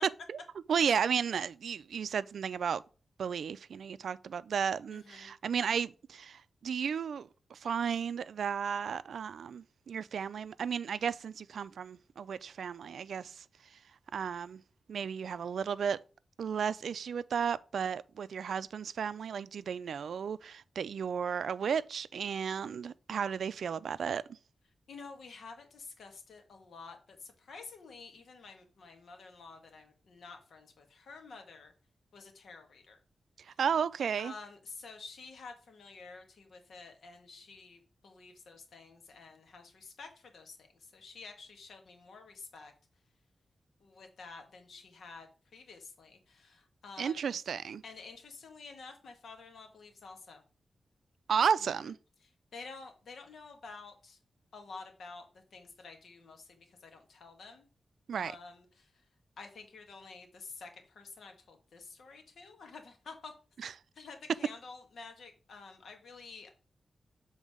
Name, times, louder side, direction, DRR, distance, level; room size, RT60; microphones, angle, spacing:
voice 1, 0.7-2.8 3.2-13.4 14.1-14.6 14.9-16.0 16.4-24.4 33.6-34.3 47.0-47.8 51.3-52.0 58.1-58.3 63.6-63.7, right 7 dB, 80° right, 0.4 m, -33 dB
voice 2, 4.9-5.3 24.9-31.7 32.1-33.0 34.2-42.7 43.8-47.4 47.8-50.4 51.7-51.9 52.2-54.2 54.5-57.7 58.2-58.9 59.4-63.3 63.9-66.5, left 4 dB, 75° left, 1.7 m, -50 dB
7.4 x 3.9 x 4.9 m
wide cardioid pair, 125°, 0 cm